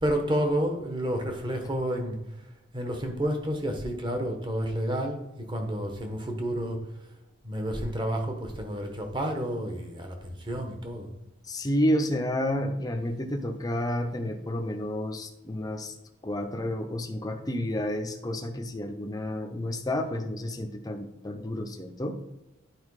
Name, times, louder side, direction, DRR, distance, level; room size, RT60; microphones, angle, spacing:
voice 1, 0.0-2.2 2.7-5.2 5.5-6.8 7.4-11.1, equal, 25° right, 4 dB, 1.2 m, -30 dB
voice 2, 11.4-15.9 16.2-22.2, left 1 dB, 20° left, 5 dB, 0.7 m, -30 dB
9.5 x 4.5 x 4.8 m, 0.98 s
head